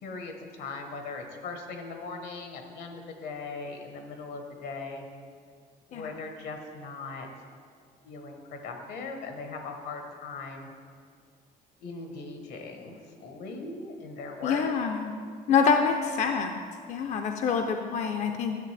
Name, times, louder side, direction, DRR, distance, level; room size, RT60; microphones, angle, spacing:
voice 1, 0.0-5.0 5.9-7.3 8.0-10.7 11.8-14.6, left 4 dB, 75° left, 4 dB, 1.2 m, -39 dB
voice 2, 14.4-15.1 15.5-16.5 16.9-18.6, left 6 dB, 45° left, 5 dB, 0.5 m, -26 dB
10.5 x 6.8 x 3.3 m, 2.2 s
cardioid pair, 110°, 17 cm